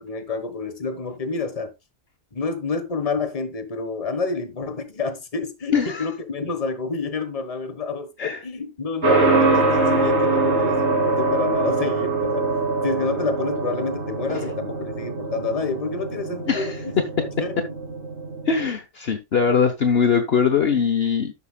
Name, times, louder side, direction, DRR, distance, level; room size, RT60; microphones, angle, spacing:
voice 1, 0.0-1.7 2.3-12.5 12.8-17.6, left 4 dB, 30° left, 1.3 m, -29 dB
voice 2, 5.7-6.0 8.2-8.4 14.3-14.5 16.5-16.7 18.5-21.3, left 6 dB, 50° left, 1.1 m, -21 dB
sound 1, 9.0-18.7, right 3 dB, 55° right, 2.9 m, -23 dB
11.5 x 8.0 x 2.3 m
omnidirectional pair, 1.4 m